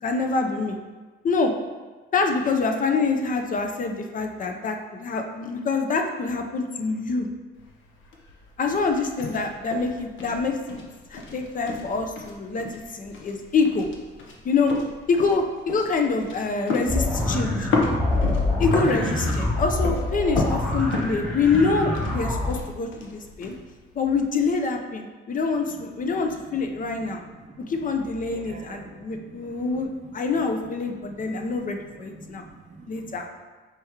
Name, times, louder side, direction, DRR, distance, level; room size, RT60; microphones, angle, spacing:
voice 1, 0.0-0.8 1.2-1.5 2.1-7.3 8.6-10.8 11.1-13.9 14.4-14.7 15.1-17.7 18.6-23.5 23.9-27.2 27.7-32.4 32.9-33.3, left 4 dB, 45° left, 4 dB, 0.5 m, -26 dB
Footsteps outdoors wood path squeak, 7.5-24.5, left 3 dB, 80° left, 0.7 m, -34 dB
sound 1, 16.9-22.6, left 2 dB, 5° left, 1.0 m, -25 dB
voice 2, 25.7-27.9 28.2-30.3 30.5-33.2, right 3 dB, 40° right, 2 dB, 0.6 m, -47 dB
4.4 x 2.9 x 3.5 m, 1.3 s
cardioid pair, 90°, 20 cm